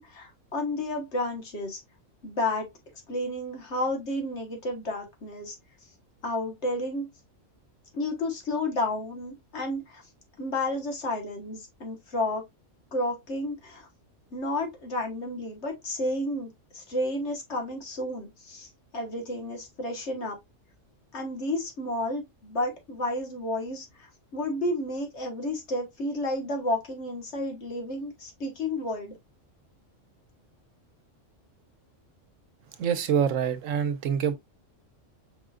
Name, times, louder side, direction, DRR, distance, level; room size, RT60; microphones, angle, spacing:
voice 1, 0.0-1.8 2.2-2.7 3.1-5.6 6.2-7.1 7.9-10.0 10.4-12.5 12.9-13.9 14.3-20.4 21.1-29.2, left 1 dB, 60° left, 1.6 m, -31 dB
voice 2, 32.8-34.3, right 8 dB, 85° right, 1.1 m, -25 dB
5.3 x 3.7 x 2.3 m
omnidirectional pair, 1.3 m